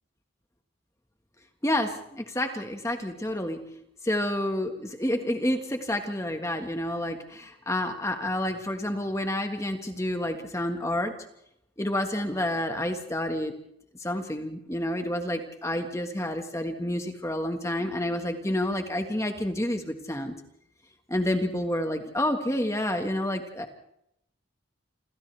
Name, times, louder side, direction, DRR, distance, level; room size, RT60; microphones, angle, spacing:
voice 1, 1.6-3.6 4.0-11.1 11.8-13.5 14.0-20.3 21.1-23.8, left 1 dB, 15° left, 5 dB, 1.6 m, -29 dB
28.5 x 27.5 x 3.4 m, 0.76 s
head